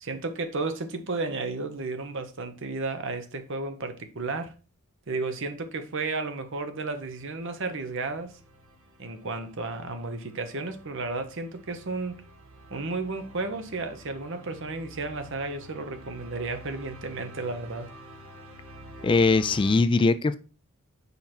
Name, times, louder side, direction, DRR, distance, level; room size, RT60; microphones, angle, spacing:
voice 1, 0.0-4.5 5.1-8.4 9.0-12.2 12.7-17.9, right 3 dB, 60° right, 0.9 m, -33 dB
sound 1, 7.0-19.8, right 1 dB, 80° right, 1.5 m, -49 dB
voice 2, 19.0-20.4, left 3 dB, 25° left, 0.3 m, -21 dB
5.5 x 4.6 x 4.3 m
head